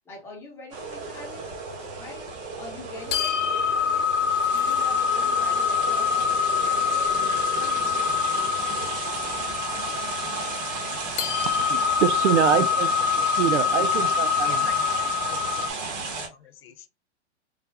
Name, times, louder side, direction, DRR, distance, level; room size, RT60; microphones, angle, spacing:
voice 1, 0.0-1.5 2.0-2.3 2.6-4.1 4.5-7.2 7.5-8.2, left 2 dB, 5° left, 1.0 m, -44 dB
sound 1, 0.7-16.3, right 4 dB, 35° right, 1.1 m, -33 dB
sound 2, 3.1-15.7, left 7 dB, 90° left, 0.8 m, -25 dB
voice 2, 11.4-12.9 13.2-14.6, right 9 dB, 75° right, 0.6 m, -25 dB
voice 3, 12.3-12.7 13.2-13.4 13.8-13.9 14.4-16.9, left 9 dB, 55° left, 0.6 m, -44 dB
3.4 x 2.2 x 3.4 m
hypercardioid pair, 165°, 35 cm